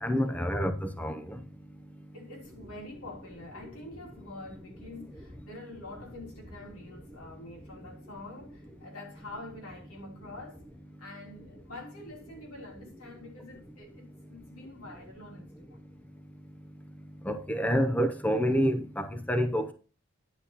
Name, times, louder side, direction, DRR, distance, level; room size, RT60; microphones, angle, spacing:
voice 1, 0.0-1.4 17.3-19.7, equal, 5° left, 0.6 m, -28 dB
voice 2, 2.1-10.7 11.0-15.8, left 2 dB, 90° left, 3.2 m, -46 dB
10.0 x 7.8 x 2.9 m
head